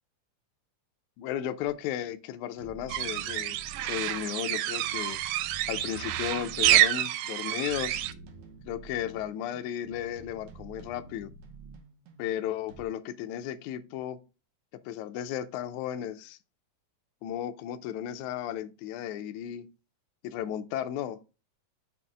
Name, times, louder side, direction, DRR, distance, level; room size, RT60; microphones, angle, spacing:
voice 1, 1.2-3.6 3.8-5.2 5.7-8.0 8.6-11.3 12.2-14.2 14.8-16.4 17.2-19.7 20.2-21.2, left 11 dB, 80° left, 1.7 m, -34 dB
sound 1, 1.6-1.7 2.6-12.8, right 4 dB, 70° right, 2.2 m, -49 dB
sound 2, 2.9-8.1, right 13 dB, 90° right, 1.7 m, -28 dB
6.1 x 4.3 x 4.9 m
omnidirectional pair, 4.0 m